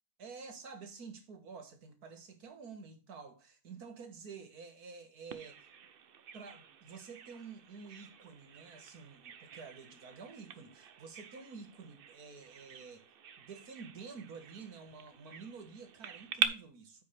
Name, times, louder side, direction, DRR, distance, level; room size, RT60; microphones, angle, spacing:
voice 1, 0.2-5.7 6.3-13.1 13.4-17.0, right 5 dB, 75° right, 2.0 m, -50 dB
Bird vocalization bird call bird song, 5.3-16.5, right 7 dB, 50° right, 0.7 m, -43 dB
9.8 x 5.6 x 3.3 m
omnidirectional pair, 1.6 m